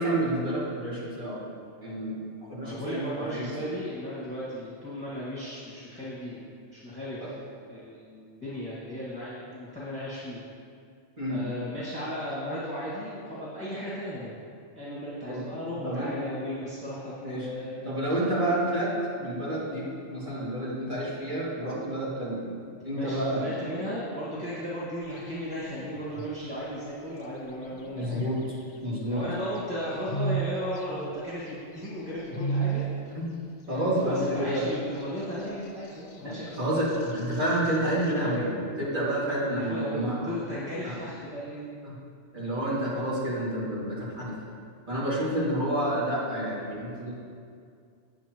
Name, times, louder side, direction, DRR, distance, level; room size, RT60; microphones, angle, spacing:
voice 1, 0.0-1.4 1.8-2.2 2.5-3.5 7.2-7.3 11.2-11.4 15.3-15.4 15.8-16.1 17.2-17.5 17.8-18.9 19.2-22.5 22.8-23.4 27.9-28.6 28.8-29.2 33.1-33.3 33.7-34.7 36.2-40.1 40.8-40.9 41.8-41.9 42.3-44.3 44.9-47.1, right 1 dB, 45° right, -9 dB, 2.5 m, -29 dB
voice 2, 2.6-7.3 7.7-10.4 11.3-14.3 14.7-18.1 22.9-28.3 29.0-32.8 33.7-36.8 39.5-41.6, equal, 5° left, -10 dB, 1.7 m, -35 dB
sound 1, 25.0-26.5 27.5-29.2 29.6-33.0 33.3-33.4 34.0-38.4, right 4 dB, 80° left, 1.2 m, -36 dB
8.6 x 8.6 x 3.0 m, 2.3 s
omnidirectional pair, 1.2 m